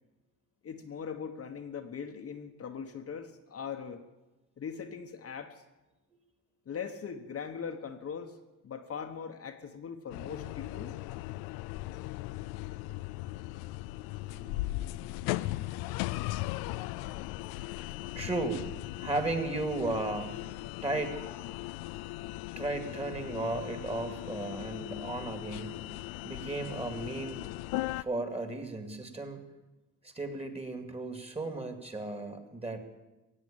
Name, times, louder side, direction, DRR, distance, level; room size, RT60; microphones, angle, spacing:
voice 1, 0.6-4.0 4.6-5.6 6.7-8.4 8.6-10.9, left 6 dB, 40° left, 4 dB, 1.2 m, -40 dB
sound 1, 10.1-28.0, left 17 dB, 80° left, 0.5 m, -38 dB
voice 2, 14.3-14.6 15.2-15.3 16.4-16.5 18.2-18.7 19.0-20.3 20.8-21.2 22.6-25.7 26.2-27.4 28.0-29.4 30.0-32.8, right 2 dB, 15° right, 6 dB, 2.3 m, -35 dB
17.0 x 8.2 x 8.8 m, 1.1 s
supercardioid pair, 80°, 36 cm